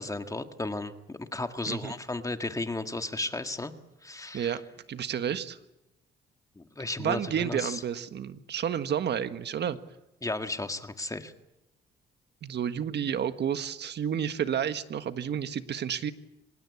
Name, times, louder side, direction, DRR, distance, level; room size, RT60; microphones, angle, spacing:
voice 1, 0.0-3.7 4.0-4.6 6.6-7.8 10.2-11.3, left 2 dB, 15° left, 7 dB, 1.9 m, -34 dB
voice 2, 4.9-5.6 7.0-9.8 12.4-16.1, right 8 dB, 60° right, 10 dB, 1.5 m, -30 dB
25.0 x 19.5 x 8.5 m, 0.95 s
cardioid pair, 90°, 20 cm